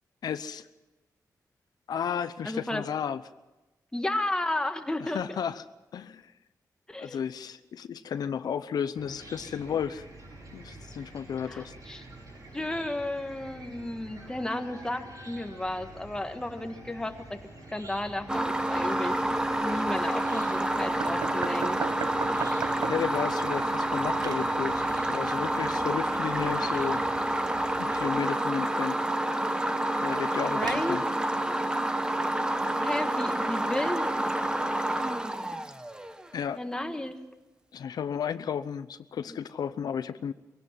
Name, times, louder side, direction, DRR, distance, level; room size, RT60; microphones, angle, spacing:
voice 1, 0.2-0.7 1.9-3.2 5.0-5.6 5.9-6.2 7.0-10.0 10.5-11.7 22.9-27.0 27.8-29.0 30.0-31.0 36.3-36.6 37.7-40.3, left 8 dB, 80° left, 12 dB, 0.7 m, -33 dB
voice 2, 2.4-2.8 3.9-5.2 6.9-7.2 11.4-12.0 12.5-17.4 17.7-19.2 19.6-21.8 30.5-31.0 31.5-31.6 32.8-34.1 36.6-37.2 39.3-39.4, left 1 dB, 10° left, 6 dB, 1.5 m, -33 dB
Chicken rooster / Cricket, 9.0-28.1, right 2 dB, 60° right, 7.6 m, -47 dB
sound 1, 18.3-36.3, right 1 dB, 10° right, 1.1 m, -28 dB
sound 2, 21.0-23.2 23.6-24.5 30.1-31.0, right 7 dB, 85° right, 0.9 m, -36 dB
22.5 x 17.5 x 7.5 m, 1.1 s
wide cardioid pair, 125°, 7 cm